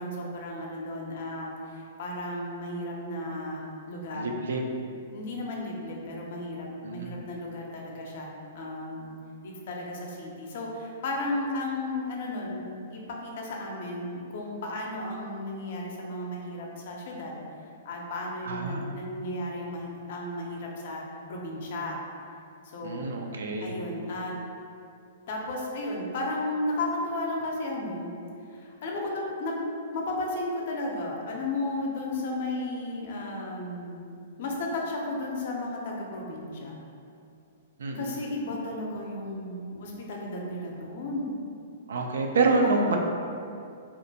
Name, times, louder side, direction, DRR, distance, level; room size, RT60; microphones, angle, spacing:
voice 1, 0.0-4.3 5.1-9.1 9.4-12.7 12.9-17.4 17.8-21.0 21.3-22.0 22.7-23.0 23.6-24.4 25.3-28.1 28.5-29.5 29.9-36.8 37.9-41.3 42.6-43.0, left 2 dB, 60° left, -1 dB, 0.5 m, -34 dB
voice 2, 4.1-4.7 6.8-7.2 18.4-19.1 22.8-23.8 37.8-38.1 41.9-43.0, right 3 dB, 85° right, 2 dB, 0.3 m, -27 dB
2.4 x 2.1 x 2.7 m, 2.5 s
hypercardioid pair, 140°, 0 cm